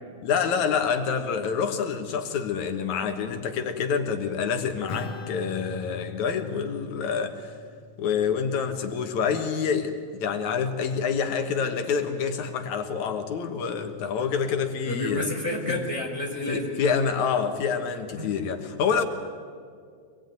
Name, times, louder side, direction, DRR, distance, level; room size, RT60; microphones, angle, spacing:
voice 1, 0.2-7.6 8.0-15.3 15.7-15.8 16.5-19.0, left 6 dB, 75° left, 6 dB, 2.7 m, -27 dB
Acoustic guitar / Strum, 4.9-9.7, left 4 dB, 60° left, 2.6 m, -41 dB
voice 2, 14.8-16.7 18.1-18.3, left 1 dB, 10° right, -1 dB, 3.7 m, -30 dB
25.0 x 19.5 x 9.3 m, 2.2 s
omnidirectional pair, 3.4 m